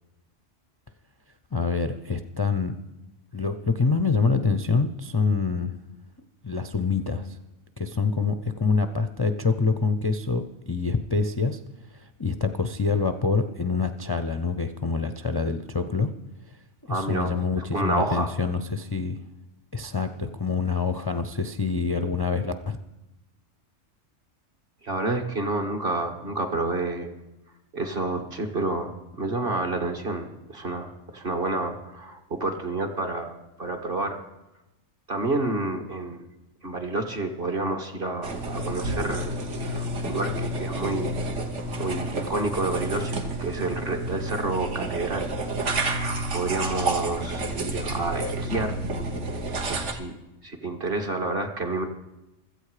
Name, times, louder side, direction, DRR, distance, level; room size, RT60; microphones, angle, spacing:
voice 1, 1.5-2.8 3.3-5.8 6.4-7.4 7.8-11.6 11.9-16.1 16.9-19.2 19.7-22.8, left 4 dB, 30° left, 8 dB, 0.4 m, -26 dB
voice 2, 16.9-18.3 24.8-27.1 27.7-28.9 29.2-34.2 35.1-36.3 36.6-39.4 39.7-41.2 41.8-45.3 46.3-48.8 49.7-50.1 50.4-51.9, right 2 dB, 50° right, 4 dB, 1.8 m, -29 dB
sound 1, 38.2-49.9, right 1 dB, 70° right, 1.7 m, -30 dB
16.0 x 13.5 x 4.9 m, 0.96 s
omnidirectional pair, 1.3 m